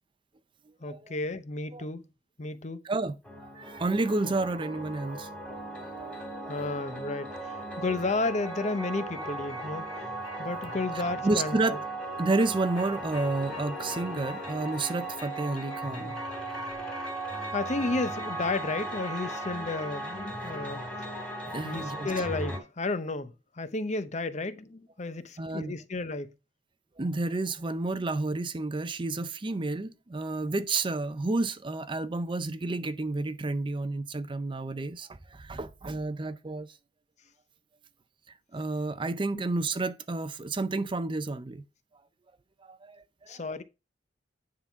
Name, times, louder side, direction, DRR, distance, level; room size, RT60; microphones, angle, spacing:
voice 1, 0.8-2.0 2.4-2.8 6.5-9.8 10.4-11.8 17.5-20.8 21.6-26.3 43.3-43.6, left 3 dB, 40° left, 0.7 m, -32 dB
voice 2, 2.8-6.2 6.4-6.8 7.5-7.6 11.2-11.8 12.2-16.2 21.5-22.2 25.4-25.7 27.0-36.8 38.5-41.6 42.6-43.4, right 2 dB, 25° right, 0.5 m, -31 dB
sound 1, 3.2-22.6, right 1 dB, 5° left, 2.6 m, -37 dB
9.6 x 3.8 x 5.6 m
head